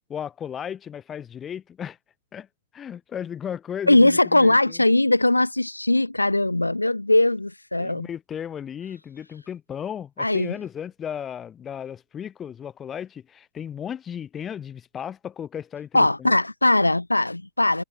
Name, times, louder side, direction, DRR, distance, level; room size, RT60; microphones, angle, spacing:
voice 1, 0.1-2.0 2.3-2.5 2.7-4.8 7.8-16.4, left 8 dB, 25° left, 1.8 m, -35 dB
voice 2, 3.9-8.1 10.2-10.5 15.9-17.8, left 2 dB, 85° left, 0.6 m, -20 dB
figure-of-eight pair, 90°, 0 cm